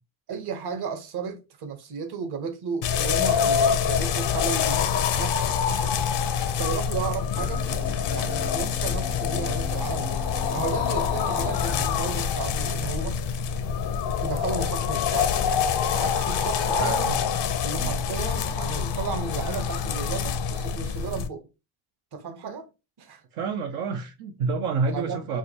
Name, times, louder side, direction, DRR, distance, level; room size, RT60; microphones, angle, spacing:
voice 1, 0.3-5.6 6.6-7.6 8.1-10.2 10.5-13.3 14.2-15.4 15.9-17.2 17.6-21.5 22.1-22.7 23.0-23.2 24.9-25.4, right 5 dB, 55° right, 0.9 m, -34 dB
sound 1, 2.8-21.3, left 7 dB, 60° left, 0.6 m, -26 dB
sound 2, 7.3-12.4, left 1 dB, 5° left, 0.3 m, -42 dB
voice 2, 16.8-17.2 17.7-18.0 23.3-25.4, right 4 dB, 80° right, 0.7 m, -28 dB
4.9 x 2.2 x 2.8 m
supercardioid pair, 65°, 48 cm